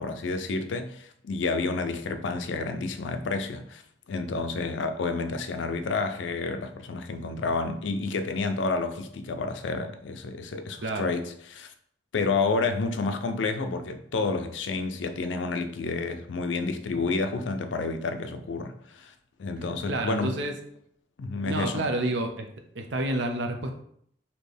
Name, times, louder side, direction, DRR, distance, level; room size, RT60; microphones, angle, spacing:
voice 1, 0.0-3.8 4.1-11.7 12.1-19.1 19.4-20.4 21.2-21.8, left 3 dB, 85° left, 0.5 m, -30 dB
voice 2, 10.8-11.1 19.9-20.6 21.4-22.5 22.7-23.7, right 2 dB, 75° right, 0.6 m, -29 dB
4.2 x 2.8 x 3.3 m
head